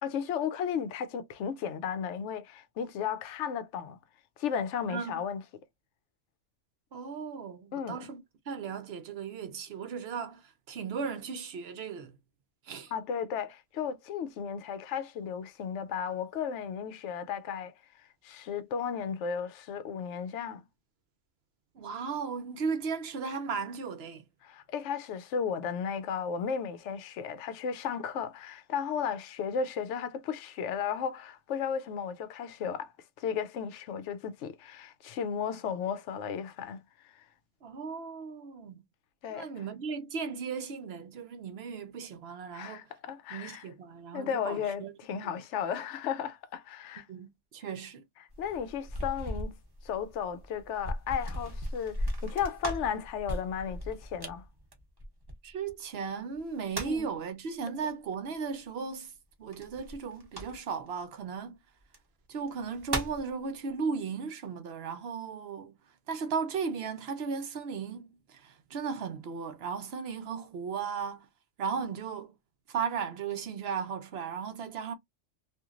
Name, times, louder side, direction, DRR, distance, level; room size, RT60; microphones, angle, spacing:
voice 1, 0.0-4.0 4.4-5.4 7.7-8.0 12.9-17.7 18.2-20.6 24.4-32.9 33.2-36.8 37.1-37.2 39.2-39.5 42.5-43.7 44.1-47.1 48.4-49.6 49.8-54.4 56.8-57.1, left 7 dB, 75° left, 0.9 m, -34 dB
voice 2, 4.9-5.2 6.9-12.2 12.7-12.9 21.7-24.2 37.6-38.8 39.3-42.9 43.3-44.9 47.1-48.0 55.4-59.1 59.4-61.6 62.3-65.7 66.1-71.3 71.6-72.3 72.7-74.9, right 5 dB, 65° right, 0.8 m, -36 dB
sound 1, 48.3-55.7 56.4-57.1 59.5-60.9 61.8-62.0 62.5-63.3, equal, 25° right, 0.8 m, -38 dB
2.9 x 2.5 x 2.4 m
omnidirectional pair, 1.2 m